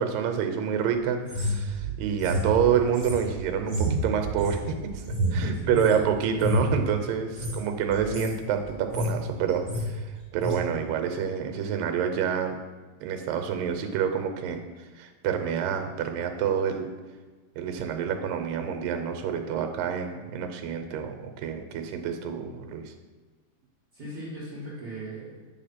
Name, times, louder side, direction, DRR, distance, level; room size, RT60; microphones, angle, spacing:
voice 1, 0.0-5.0 5.3-12.6 13.0-16.9 17.6-22.9, right 8 dB, 85° right, 6 dB, 2.4 m, -28 dB
sound 1, 1.2-6.0 6.3-6.7 7.2-7.6 7.9-8.4 8.7-9.2 9.5-9.9 10.4-10.6, equal, 10° right, 2.1 m, -29 dB
voice 2, 5.3-6.0 7.5-7.6 23.9-25.5, right 1 dB, 35° right, -9 dB, 1.9 m, -37 dB
8.9 x 3.6 x 5.7 m, 1.3 s
omnidirectional pair, 3.9 m